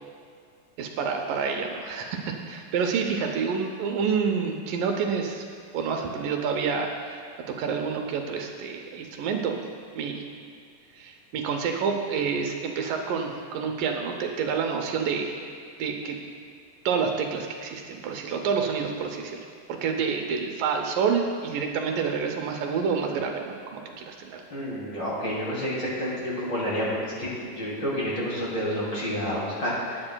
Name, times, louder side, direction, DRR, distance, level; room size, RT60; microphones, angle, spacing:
voice 1, 0.8-5.4 5.7-9.6 10.0-10.2 11.0-15.3 15.8-16.2 16.9-24.4, right 6 dB, 80° right, 3 dB, 2.4 m, -28 dB
voice 2, 24.5-30.0, equal, 35° left, -7 dB, 3.0 m, -29 dB
20.0 x 8.8 x 2.2 m, 2.3 s
omnidirectional pair, 3.9 m